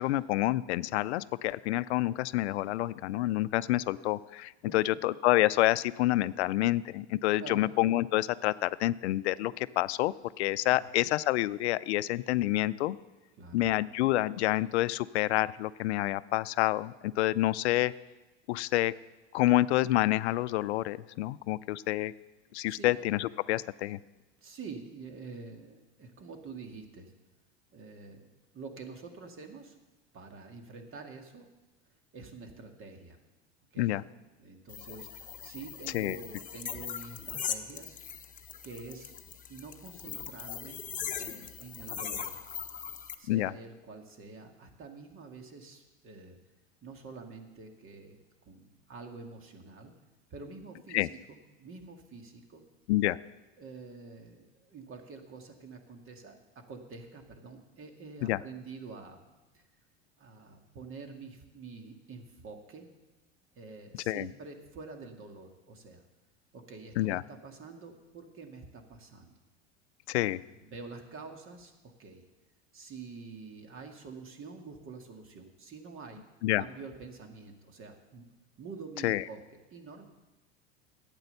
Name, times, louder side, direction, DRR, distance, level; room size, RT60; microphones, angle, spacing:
voice 1, 0.0-13.0 13.5-17.9 18.5-18.9 19.3-22.1 22.5-24.0 33.8-34.0 35.9-36.2 43.3-43.5 50.9-51.1 52.9-53.2 58.2-58.4 64.1-64.3 67.0-67.2 70.1-70.4 76.4-76.6 79.0-79.2, left 16 dB, 85° left, 18 dB, 0.5 m, -28 dB
voice 2, 7.4-7.7 10.7-10.9 13.4-13.7 22.7-22.9 24.4-27.1 27.7-29.8 30.1-31.5 32.1-33.2 33.7-34.0 34.4-38.0 38.6-39.2 39.5-40.8 41.2-42.4 43.2-46.4 46.8-48.2 48.5-49.9 50.3-52.6 53.6-59.2 59.5-59.7 60.2-62.9 63.6-66.0 66.5-69.3 70.1-70.2 70.6-71.7 72.0-72.3 72.7-78.3 78.6-80.0, right 4 dB, 40° right, 4 dB, 2.2 m, -47 dB
sound 1, 34.7-43.1, left 8 dB, 25° left, 1.0 m, -40 dB
12.0 x 9.1 x 6.7 m, 1.1 s
hypercardioid pair, 95°, 32 cm